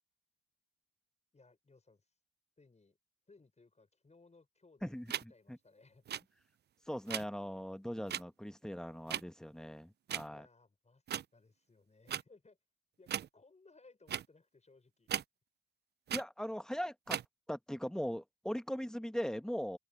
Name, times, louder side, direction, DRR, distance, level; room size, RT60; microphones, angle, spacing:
voice 1, 1.3-2.1 2.6-3.0 3.3-5.0 5.3-6.0 10.2-12.6 13.0-15.1, left 3 dB, 20° left, 6.2 m, -63 dB
voice 2, 4.8-5.6 6.9-10.5 16.1-17.2 17.5-19.8, equal, ahead, 1.2 m, -40 dB
sound 1, 5.1-5.2 6.1-6.2 7.1-7.2 8.1-8.2 9.1-9.2 10.1-10.3 11.1-11.2 12.1-12.2 13.1-13.3 14.1-14.3 15.1-15.2 16.1-16.2 17.1-17.3, right 10 dB, 35° right, 0.4 m, -37 dB
open air
cardioid pair, 90°, 30 cm